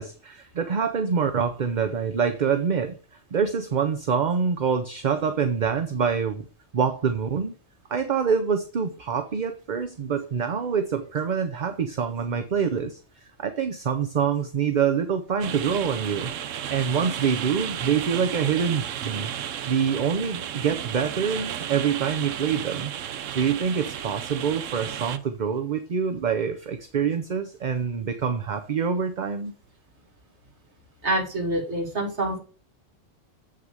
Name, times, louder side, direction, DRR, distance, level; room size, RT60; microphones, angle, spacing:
voice 1, 0.0-3.0 3.3-6.4 6.7-7.5 7.9-13.0 13.4-16.3 16.7-19.3 19.7-22.9 23.3-29.5, right 6 dB, 45° right, 8 dB, 0.7 m, -25 dB
sound 1, 15.4-25.2, right 9 dB, 80° right, 1.0 m, -33 dB
voice 2, 31.0-32.4, right 1 dB, 65° right, 1 dB, 2.5 m, -26 dB
7.8 x 5.7 x 4.8 m, 0.36 s
omnidirectional pair, 1.3 m